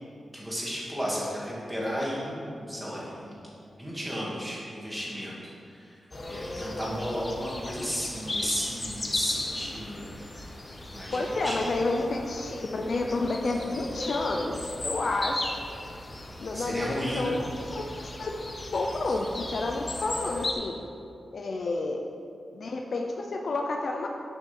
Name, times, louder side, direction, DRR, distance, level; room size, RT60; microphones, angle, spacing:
voice 1, 0.3-3.3 3.8-6.0 6.3-10.6 10.9-11.7 16.5-17.4, equal, 5° right, -6 dB, 2.2 m, -34 dB
sound 1, 6.1-20.5, left 2 dB, 25° left, 0.9 m, -36 dB
voice 2, 11.1-15.6 16.4-17.5 17.7-20.8 21.3-22.0 22.5-24.1, left 2 dB, 50° left, 2 dB, 0.6 m, -30 dB
9.7 x 6.3 x 6.0 m, 2.5 s
wide cardioid pair, 170°, 0 cm